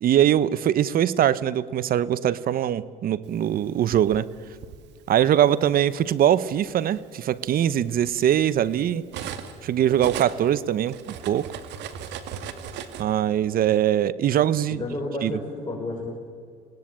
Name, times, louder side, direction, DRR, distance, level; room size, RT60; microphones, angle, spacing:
voice 1, 0.0-4.3 5.1-9.0 9.6-11.6 13.0-14.8 15.2-15.3, right 10 dB, 50° right, 18 dB, 1.0 m, -22 dB
Cutlery silverware, 3.5-4.8 5.7-5.9 6.3-9.6 9.9-13.0, right 8 dB, 70° right, 2.2 m, -38 dB
voice 2, 14.7-16.1, left 2 dB, 25° left, -3 dB, 6.4 m, -31 dB
27.5 x 19.0 x 8.7 m, 2.2 s
supercardioid pair, 85°, 19 cm